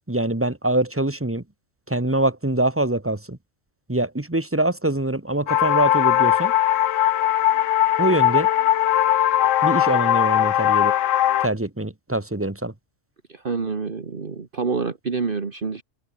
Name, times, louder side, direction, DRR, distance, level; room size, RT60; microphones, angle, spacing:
voice 1, 0.1-1.4 1.9-3.4 3.9-6.5 8.0-8.5 9.6-10.9 11.4-12.7, right 1 dB, 10° right, 1.4 m, -24 dB
sound 1, 5.5-11.5, left 12 dB, 80° left, 1.0 m, -19 dB
voice 2, 13.3-15.8, right 4 dB, 45° right, 1.7 m, -27 dB
omnidirectional pair, 1.3 m